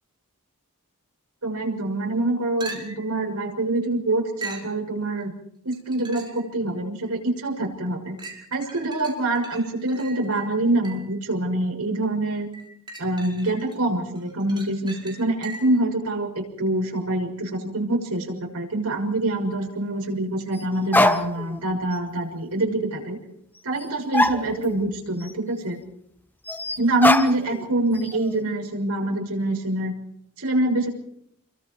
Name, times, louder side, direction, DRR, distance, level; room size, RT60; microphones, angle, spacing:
voice 1, 1.4-5.3 5.6-8.2 8.5-12.5 13.0-23.2 23.6-25.8 26.8-29.9 30.4-30.9, right 1 dB, 90° right, 2 dB, 6.4 m, -25 dB
sound 1, 2.6-3.2 4.4-4.7 5.7-6.5 7.0-7.1 8.2-11.2 12.5-13.8 14.2-15.9 19.6-19.7, right 3 dB, 20° right, 5.2 m, -40 dB
sound 2, 18.9-19.0 20.5-20.6 20.9-21.6 21.9-22.0 23.8-23.9 24.1-25.0 25.2-25.3 26.5-27.6 27.9-28.4, left 1 dB, 10° left, 1.0 m, -23 dB
29.0 x 23.0 x 4.8 m, 0.71 s
head